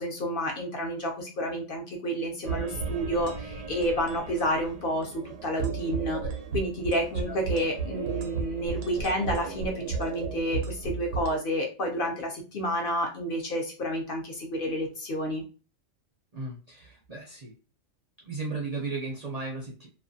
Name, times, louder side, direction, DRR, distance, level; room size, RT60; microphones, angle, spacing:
voice 1, 0.0-15.4, equal, 55° left, 1 dB, 0.7 m, -30 dB
sound 1, 2.4-11.4, right 5 dB, 85° right, 1.0 m, -34 dB
voice 2, 16.3-17.5 18.2-19.9, right 3 dB, 50° right, -2 dB, 0.5 m, -35 dB
2.4 x 2.2 x 2.6 m, 0.34 s
omnidirectional pair, 1.2 m